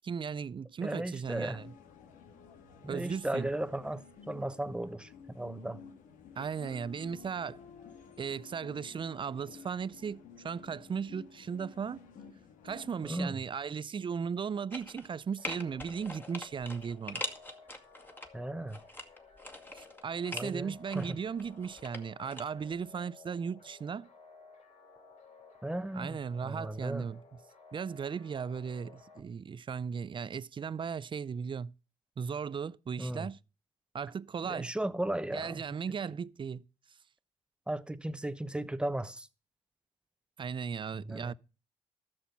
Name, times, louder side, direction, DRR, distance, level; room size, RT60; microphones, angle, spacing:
voice 1, 0.0-1.7 2.9-3.5 6.4-7.6 8.2-12.1 12.6-17.2 19.7-24.1 25.9-27.2 27.7-31.7 32.2-33.4 33.9-34.7 35.3-36.6 40.4-41.3, right 6 dB, 40° right, 0.5 m, -37 dB
voice 2, 0.8-1.6 2.8-5.8 13.0-13.3 18.3-18.8 20.3-21.2 25.6-27.1 33.0-33.3 34.4-35.6 37.7-39.3 40.9-41.3, right 1 dB, 5° right, 1.0 m, -36 dB
sound 1, 1.2-13.2, left 6 dB, 75° left, 1.5 m, -53 dB
rocks moving, 14.7-15.1 15.4-18.3 18.7-20.5 20.9-22.4 22.7-22.8, left 1 dB, 15° left, 2.1 m, -42 dB
sound 2, 15.4-29.2, left 4 dB, 55° left, 2.5 m, -56 dB
13.0 x 6.3 x 5.8 m
supercardioid pair, 55°, 14 cm